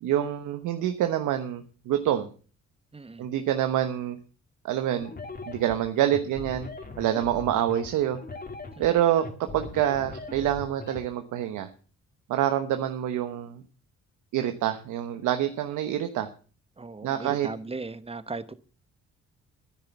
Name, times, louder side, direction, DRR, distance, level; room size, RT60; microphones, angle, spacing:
voice 1, 0.0-2.3 3.2-4.2 4.6-5.1 5.4-6.7 7.0-8.2 8.8-11.7 12.3-13.6 14.3-16.3 17.0-17.5, right 11 dB, 85° right, 1.1 m, -26 dB
voice 2, 2.9-3.3 8.8-8.9 16.8-18.5, right 3 dB, 20° right, 1.0 m, -37 dB
sound 1, 5.0-11.0, left 3 dB, 30° left, 2.6 m, -40 dB
10.5 x 10.5 x 7.2 m
cardioid pair, 90°, 30 cm